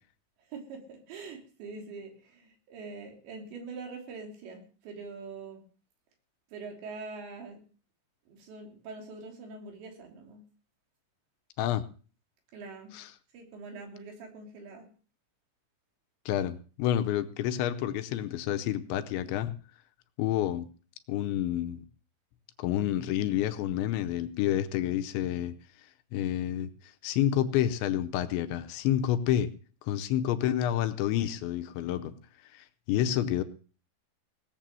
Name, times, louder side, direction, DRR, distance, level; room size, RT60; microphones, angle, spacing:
voice 1, 0.4-5.6 6.5-7.6 8.3-10.4 12.5-12.9 13.3-14.9, right 4 dB, 70° right, 2 dB, 5.1 m, -44 dB
voice 2, 16.3-19.5 20.2-20.7 21.1-21.8 22.6-29.5 29.8-32.1 32.4-33.4, left 11 dB, 80° left, 9 dB, 3.0 m, -29 dB
18.0 x 7.6 x 7.6 m, 0.40 s
omnidirectional pair, 5.5 m